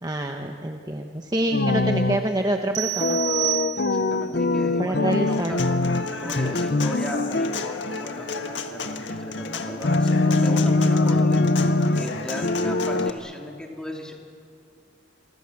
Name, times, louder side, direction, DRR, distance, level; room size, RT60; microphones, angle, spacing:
voice 1, 0.0-3.2 4.8-5.6 6.2-6.4, right 1 dB, 20° right, 4 dB, 1.1 m, -27 dB
sound 1, 1.5-2.3 3.0-6.1 6.4-7.6 9.8-12.1 12.4-13.1, left 2 dB, 55° left, 0.8 m, -22 dB
sound 2, 2.7-4.3, right 19 dB, 75° right, 0.8 m, -28 dB
voice 2, 3.7-5.6 6.2-11.4 11.9-14.1, left 1 dB, 5° left, 0 dB, 3.0 m, -36 dB
Human voice / Acoustic guitar, 5.1-13.1, left 3 dB, 75° left, 1.7 m, -32 dB
28.5 x 24.0 x 7.2 m, 2.4 s
head